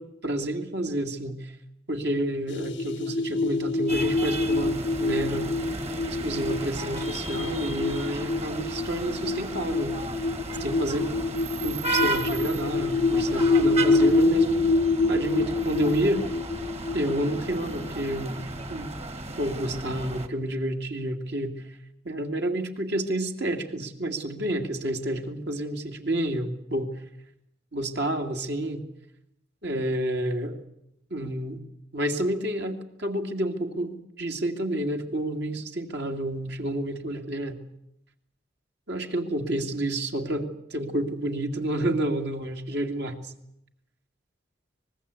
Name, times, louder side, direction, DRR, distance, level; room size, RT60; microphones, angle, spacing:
voice 1, 0.0-1.5 1.9-5.5 6.1-10.0 10.6-11.1 11.6-14.7 15.1-16.3 16.9-18.4 18.7-18.9 19.4-21.5 22.0-26.9 27.7-28.8 29.6-30.6 31.1-31.6 31.9-37.6 38.9-43.3, right 1 dB, 60° right, 4 dB, 2.3 m, -29 dB
sound 1, 2.5-18.8, left 3 dB, 75° left, 1.0 m, -26 dB
sound 2, 3.9-20.3, right 2 dB, 35° right, 1.7 m, -34 dB
25.5 x 20.0 x 8.3 m, 0.80 s
head